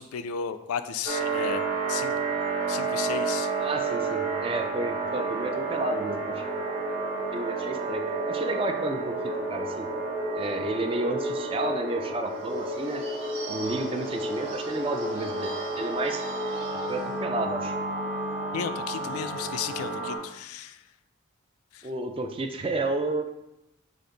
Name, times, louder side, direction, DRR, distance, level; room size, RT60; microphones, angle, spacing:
voice 1, 0.0-1.6 1.9-2.1 2.7-3.5 18.5-20.8 21.7-21.8, left 7 dB, 90° left, 11 dB, 0.3 m, -34 dB
sound 1, 1.1-20.2, right 3 dB, 45° right, 1.0 m, -31 dB
voice 2, 3.6-6.5 7.3-9.2 9.5-9.9 10.3-13.0 13.5-16.2 16.9-17.8 21.8-23.3, right 2 dB, 25° right, 5 dB, 0.3 m, -31 dB
Bird / Bell, 12.2-17.2, right 2 dB, 60° right, 1.3 m, -44 dB
5.1 x 2.5 x 3.9 m, 0.89 s
head